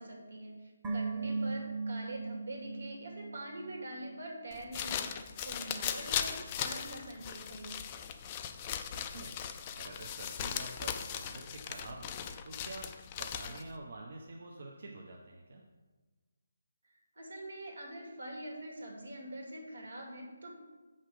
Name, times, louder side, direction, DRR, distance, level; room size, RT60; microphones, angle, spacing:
voice 1, 0.0-7.8 17.2-20.5, right 1 dB, 80° right, 0 dB, 2.4 m, -44 dB
sound 1, 0.8-4.2 4.4-4.5, right 3 dB, 10° right, 1.0 m, -38 dB
voice 2, 1.2-1.6 8.9-9.4 9.7-15.6, right 2 dB, 55° right, 0 dB, 0.9 m, -48 dB
sound 2, 4.5-13.7, left 9 dB, 20° left, 0.3 m, -38 dB
7.6 x 5.7 x 4.9 m, 1.3 s
hypercardioid pair, 170°, 0 cm